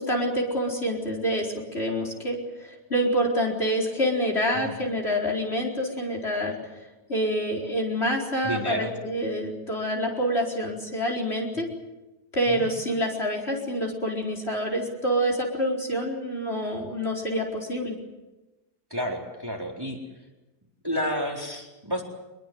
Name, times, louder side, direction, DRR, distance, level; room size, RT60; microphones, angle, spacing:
voice 1, 0.0-6.5 7.1-11.7 12.3-18.0, equal, 40° left, -1 dB, 4.9 m, -27 dB
voice 2, 8.4-8.9 12.5-12.7 18.9-20.0 20.8-22.0, equal, 15° right, 0 dB, 4.2 m, -30 dB
25.5 x 22.5 x 7.9 m, 1.1 s
omnidirectional pair, 1.8 m